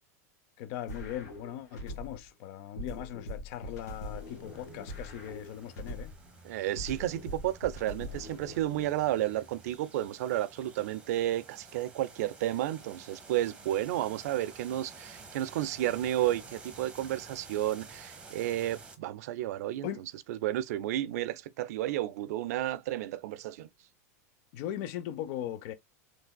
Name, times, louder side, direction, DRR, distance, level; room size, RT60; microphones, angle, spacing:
voice 1, 0.6-6.1 19.8-20.0 24.5-25.7, left 11 dB, 55° left, 0.6 m, -39 dB
sound 1, 0.9-2.3 2.8-6.3 6.8-8.9, left 1 dB, 85° left, 1.7 m, -42 dB
sound 2, 3.6-19.0, right 4 dB, 15° right, 0.9 m, -52 dB
sound 3, 4.4-9.8, right 3 dB, 5° left, 1.3 m, -58 dB
voice 2, 6.4-19.9 20.3-23.7, right 13 dB, 70° right, 0.4 m, -32 dB
3.3 x 3.2 x 2.2 m
hypercardioid pair, 120°, 9 cm